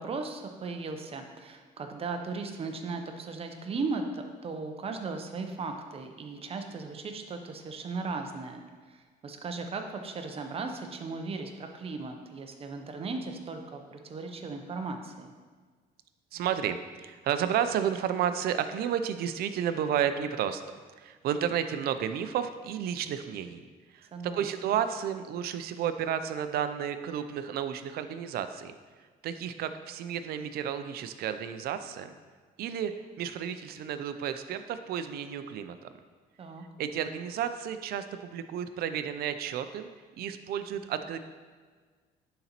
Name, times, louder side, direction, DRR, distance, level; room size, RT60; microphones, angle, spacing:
voice 1, 0.0-8.6 8.9-15.3 24.1-24.4 36.4-36.6, right 4 dB, 35° right, 5 dB, 0.8 m, -37 dB
voice 2, 16.3-20.6 21.0-23.6 23.9-28.7 29.2-32.1 32.6-35.8 36.8-39.9 40.2-41.2, right 9 dB, 65° right, 10 dB, 0.5 m, -32 dB
10.5 x 4.1 x 3.0 m, 1.5 s
cardioid pair, 110°, 17 cm